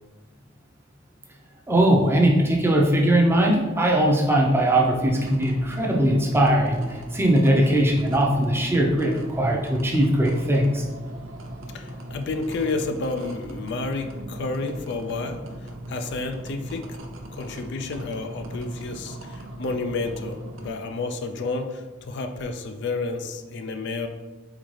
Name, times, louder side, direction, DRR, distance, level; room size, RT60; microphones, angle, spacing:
voice 1, 1.7-10.8, right 1 dB, 10° right, -1 dB, 0.6 m, -20 dB
sound 1, 4.9-20.7, right 1 dB, 90° right, 0.6 m, -38 dB
voice 2, 11.7-17.0 17.3-24.1, left 3 dB, 60° left, 6 dB, 0.4 m, -30 dB
4.2 x 3.9 x 3.2 m, 1.3 s
head